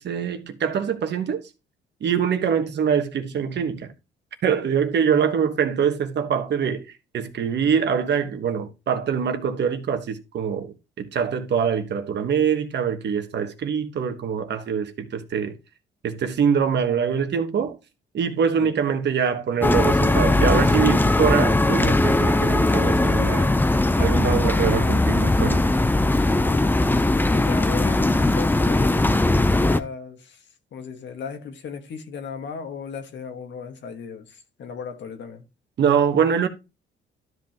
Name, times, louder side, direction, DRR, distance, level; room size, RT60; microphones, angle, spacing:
voice 1, 0.0-1.4 2.0-3.9 4.4-15.6 16.0-17.8 18.1-23.5 24.0-25.7 35.8-36.5, right 7 dB, 60° right, 1.3 m, -24 dB
voice 2, 5.1-5.7 18.6-18.8 26.4-27.0 27.3-30.4 30.7-35.4, left 6 dB, 65° left, 1.5 m, -36 dB
sound 1, 19.6-29.8, left 2 dB, 10° left, 0.6 m, -19 dB
12.5 x 5.4 x 2.9 m
cardioid pair, 90°, 20 cm